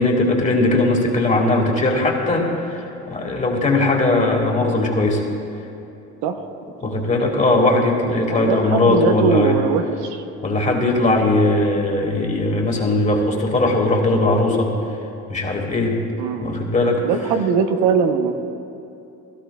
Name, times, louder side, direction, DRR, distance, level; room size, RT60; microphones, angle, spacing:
voice 1, 0.0-5.2 6.8-9.6 10.4-14.7 15.3-16.0 16.4-17.0, left 2 dB, 25° left, 1 dB, 2.0 m, -19 dB
voice 2, 8.3-10.2 16.2-16.5 17.0-18.3, right 6 dB, 80° right, 6 dB, 0.9 m, -20 dB
16.5 x 12.5 x 2.3 m, 2.8 s
supercardioid pair, 90°, 31 cm